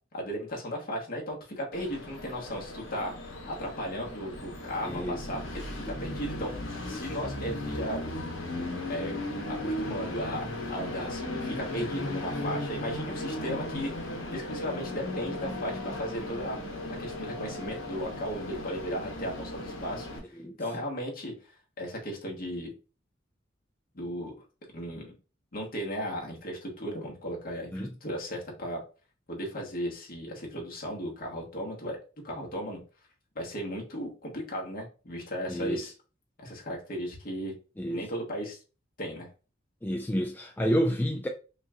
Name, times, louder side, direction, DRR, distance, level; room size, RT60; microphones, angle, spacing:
voice 1, 0.1-6.5 6.9-8.0 8.5-9.2 9.5-16.6 16.9-20.1 20.6-21.3 21.8-22.7 23.9-24.3 24.7-25.1 25.5-28.8 29.3-32.0 32.2-32.8 33.3-35.9 36.4-37.5 37.9-38.6 39.0-39.3, equal, 45° left, 1.3 m, -36 dB
Train, 1.7-20.2, left 1 dB, 80° left, 1.0 m, -36 dB
voice 2, 4.8-5.2 20.4-20.5 27.7-27.9 35.5-35.9 37.8-38.0 39.8-41.3, equal, 10° left, 0.3 m, -29 dB
5.4 x 2.4 x 2.8 m
head